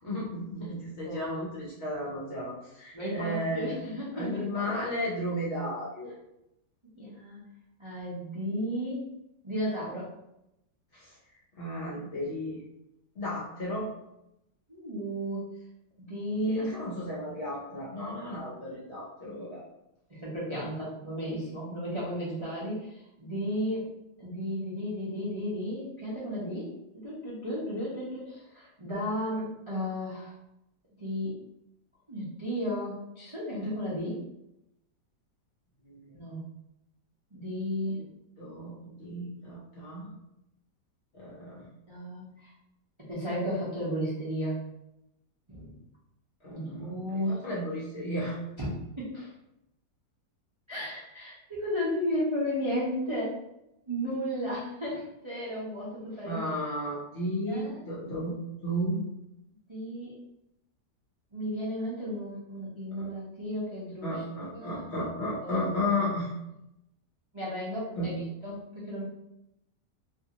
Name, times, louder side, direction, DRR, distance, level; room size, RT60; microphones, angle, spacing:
voice 1, 0.0-3.8 4.1-6.1 11.0-11.1 11.6-12.6 13.2-13.9 16.4-19.6 35.8-36.2 37.9-38.0 38.4-40.1 41.1-41.7 46.4-48.4 56.2-58.3 58.6-59.0 63.0-63.1 64.0-66.3 68.0-68.2, left 1 dB, 55° left, -6 dB, 0.8 m, -34 dB
voice 2, 1.0-1.4 2.9-4.8 6.9-7.4 7.8-9.1 9.4-10.1 10.9-11.0 14.7-15.4 16.0-16.7 20.1-23.9 24.2-30.3 31.0-31.4 32.1-34.3 36.1-36.4 37.3-38.0 41.9-42.5 43.0-44.6 45.5-45.7 46.5-47.4 48.6-48.7 49.0-49.3 50.7-53.4 53.9-56.4 57.5-57.8 59.7-60.1 61.3-64.1 64.5-64.8 65.4-65.6 67.3-69.0, equal, 40° right, -9 dB, 0.4 m, -34 dB
2.7 x 2.5 x 2.8 m, 0.85 s
omnidirectional pair, 1.8 m